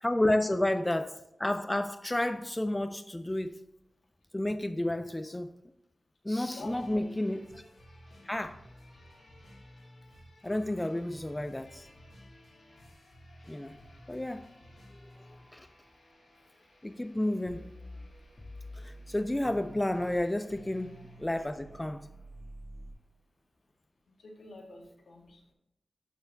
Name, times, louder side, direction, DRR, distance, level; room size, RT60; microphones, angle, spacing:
voice 1, 0.0-3.6 4.3-5.5 6.2-7.4 8.2-8.6 10.4-11.9 13.5-13.8 14.1-14.5 15.3-15.7 16.8-17.6 18.8-20.9 21.2-22.1, left 1 dB, 15° left, 0.4 m, -31 dB
voice 2, 6.5-7.3 24.2-25.5, left 2 dB, 80° left, 1.7 m, -47 dB
sound 1, 6.5-22.5 22.8-22.9, left 1 dB, 65° left, 3.2 m, -56 dB
sound 2, 17.5-20.2 20.5-22.9, equal, 35° left, 1.7 m, -48 dB
12.0 x 4.3 x 3.4 m
wide cardioid pair, 100°, 0 cm